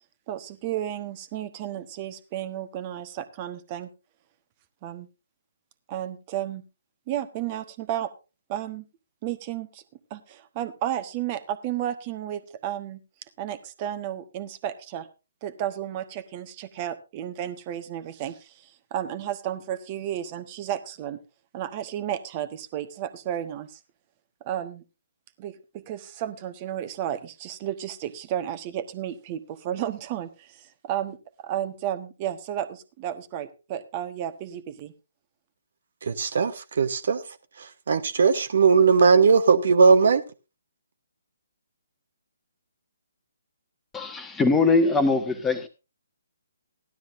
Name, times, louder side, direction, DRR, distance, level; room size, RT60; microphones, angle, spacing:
voice 1, 0.3-3.9 4.8-5.1 5.9-6.6 7.1-8.1 8.5-8.9 9.2-9.8 10.1-13.0 13.4-15.1 15.4-21.2 21.5-23.8 24.4-24.8 25.4-34.9, right 11 dB, 30° right, 1.2 m, -33 dB
voice 2, 36.0-37.2 37.9-40.2, right 5 dB, 55° right, 1.1 m, -18 dB
voice 3, 43.9-45.7, left 3 dB, 10° left, 1.4 m, -22 dB
16.5 x 12.0 x 2.6 m
figure-of-eight pair, 135°, 0 cm